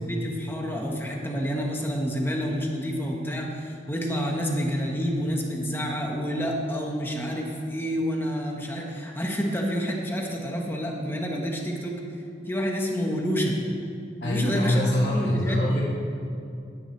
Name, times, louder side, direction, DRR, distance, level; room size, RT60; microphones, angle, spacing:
voice 1, 0.1-11.9 12.5-13.6 14.2-14.8 15.1-15.6, equal, 15° left, 0 dB, 1.4 m, -28 dB
voice 2, 14.2-15.8, left 1 dB, 85° left, -7 dB, 3.0 m, -24 dB
17.5 x 9.9 x 3.4 m, 2.5 s
head